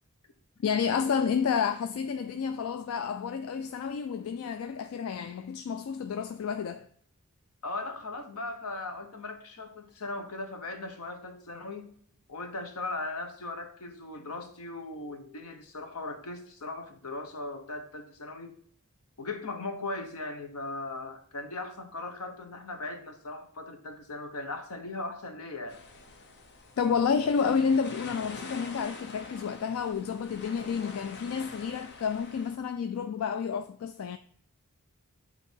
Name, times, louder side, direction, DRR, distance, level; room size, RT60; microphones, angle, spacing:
voice 1, 0.6-6.9 26.8-34.2, left 6 dB, 70° left, 0.3 m, -30 dB
voice 2, 7.6-11.9 12.3-18.5 19.2-25.8, left 2 dB, 85° left, 1.0 m, -38 dB
sound 1, 25.7-32.6, left 3 dB, 50° left, 0.8 m, -45 dB
8.1 x 2.9 x 4.4 m
head